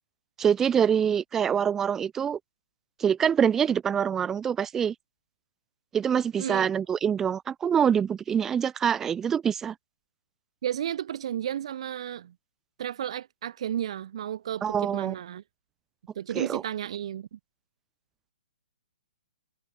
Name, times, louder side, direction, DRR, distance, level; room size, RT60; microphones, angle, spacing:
voice 1, 0.4-2.4 3.0-4.9 5.9-9.7 14.6-15.1 16.3-16.6, right 8 dB, 10° right, 0.5 m, -25 dB
voice 2, 10.6-12.3 12.8-15.4 16.2-17.4, right 10 dB, 50° right, 2.3 m, -33 dB
hypercardioid pair, 160°, 4 cm